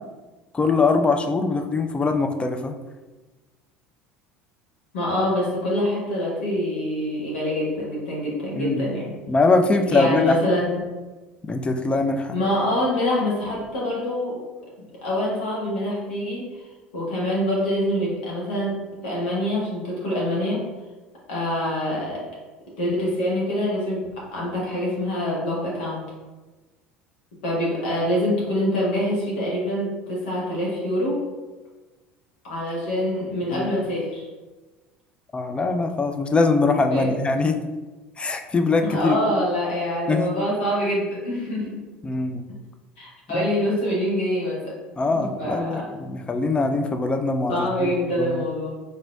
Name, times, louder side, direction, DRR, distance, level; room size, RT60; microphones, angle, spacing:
voice 1, 0.5-2.7 8.5-8.9 9.3-10.4 11.4-12.4 33.5-33.7 35.3-37.6 38.2-39.2 40.1-40.3 42.0-42.4 43.3-43.5 45.0-48.4, left 3 dB, 20° left, 6 dB, 0.4 m, -22 dB
voice 2, 4.9-9.1 9.9-10.9 12.3-14.4 14.8-16.5 16.9-18.8 19.0-20.6 21.3-22.2 22.8-24.1 24.3-26.0 27.4-31.2 32.4-34.3 36.9-37.2 38.8-41.8 43.0-44.8 45.1-45.9 47.5-48.7, left 1 dB, 70° left, -5 dB, 1.4 m, -25 dB
3.9 x 3.8 x 2.4 m, 1.2 s
figure-of-eight pair, 65°, 6 cm